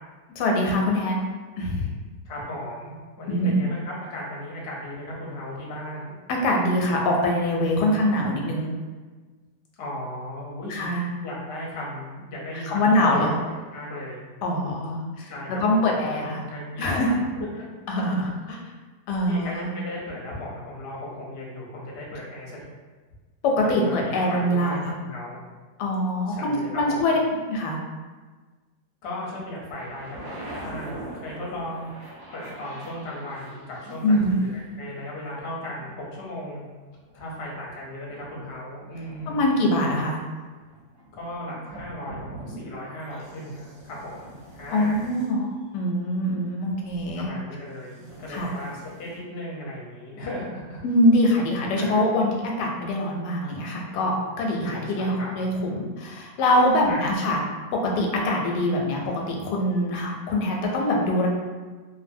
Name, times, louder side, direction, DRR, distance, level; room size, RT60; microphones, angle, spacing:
voice 1, 0.4-1.2 1.6-1.9 3.3-3.6 6.3-8.7 10.7-11.0 12.7-13.3 14.4-16.4 16.8-17.1 17.9-18.6 19.1-19.7 23.4-24.9 25.8-27.2 27.5-27.8 34.0-34.4 39.3-40.2 44.7-47.3 48.3-48.5 50.8-57.4 57.8-61.3, left 1 dB, 90° left, 0 dB, 1.2 m, -23 dB
voice 2, 2.2-6.2 9.8-10.9 11.2-13.3 13.7-14.2 15.2-17.7 19.2-22.6 23.7-25.4 26.3-27.2 29.0-31.9 32.3-36.7 37.1-39.4 41.1-45.1 47.1-50.8 51.8-52.1 54.6-55.3 56.9-57.4, left 1 dB, 55° left, -4 dB, 0.7 m, -36 dB
sound 1, 29.7-34.7 35.5-36.6 37.0-38.5 38.9-46.4 47.8-49.2, right 1 dB, 60° right, 0.9 m, -43 dB
2.6 x 2.5 x 2.6 m, 1.3 s
omnidirectional pair, 1.7 m